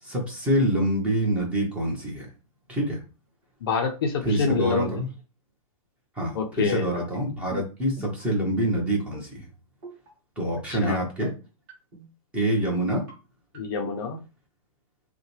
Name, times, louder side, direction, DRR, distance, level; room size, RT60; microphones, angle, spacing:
voice 1, 0.0-2.3 2.7-3.0 4.2-5.1 6.2-9.4 10.4-11.3 12.3-13.0, right 1 dB, 5° right, -2 dB, 0.8 m, -26 dB
voice 2, 3.6-4.9 6.3-7.0 10.7-11.0 13.5-14.2, left 5 dB, 40° left, 4 dB, 0.5 m, -27 dB
sound 1, 7.1-7.6 8.0-8.2 9.0-9.5 9.8-10.1 10.9-11.3 11.7-12.1 12.7-13.1 13.5-13.9, right 1 dB, 25° right, 1.7 m, -42 dB
5.5 x 2.2 x 3.1 m, 0.32 s
hypercardioid pair, 170°, 18 cm